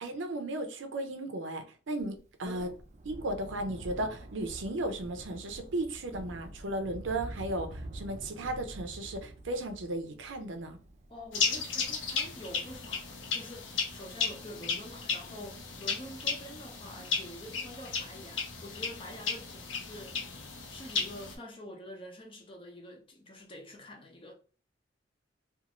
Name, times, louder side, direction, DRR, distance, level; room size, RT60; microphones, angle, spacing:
voice 1, 0.0-2.7 3.1-10.8, right 1 dB, 90° right, 0.6 m, -35 dB
Thunder, 2.0-14.9 15.7-15.8, right 1 dB, 40° right, 0.4 m, -47 dB
voice 2, 2.4-2.8 11.1-20.2 20.7-24.3, equal, 30° left, 0.6 m, -47 dB
sound 1, 11.3-21.3, left 5 dB, 85° left, 0.7 m, -35 dB
2.5 x 2.4 x 2.9 m
head